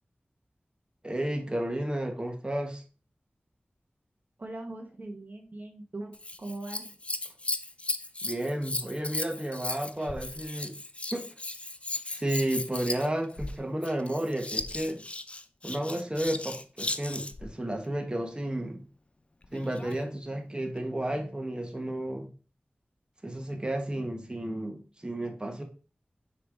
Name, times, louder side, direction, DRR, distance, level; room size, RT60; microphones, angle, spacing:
voice 1, 1.0-2.8 8.2-10.7 11.1-11.3 12.1-15.0 15.6-18.8 19.5-22.3 23.2-25.6, right 1 dB, 25° right, 3 dB, 1.3 m, -32 dB
voice 2, 4.4-7.0, right 2 dB, 55° right, 3 dB, 1.2 m, -41 dB
Scissors, 6.1-17.5 19.4-20.1 20.8-20.9, left 2 dB, 35° left, 0.5 m, -36 dB
6.4 x 3.3 x 4.8 m, 0.35 s
wide cardioid pair, 65°, 4 cm